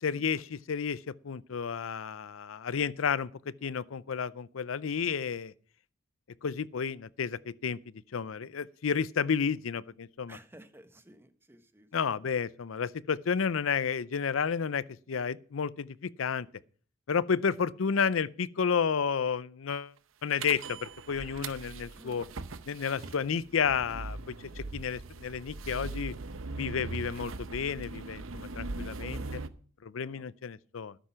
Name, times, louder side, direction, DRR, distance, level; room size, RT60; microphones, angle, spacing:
voice 1, 0.0-5.5 6.4-7.8 8.1-10.4 11.9-16.5 17.1-19.9 20.2-22.3 22.7-26.1 26.6-29.2 29.8-31.0, left 6 dB, 85° left, 0.5 m, -31 dB
voice 2, 10.3-11.9 12.2-12.3 22.0-22.2 29.0-29.3 30.0-30.3, right 1 dB, 10° right, 1.2 m, -53 dB
sound 1, 20.4-29.5, right 3 dB, 85° right, 0.8 m, -40 dB
12.5 x 10.0 x 5.7 m
head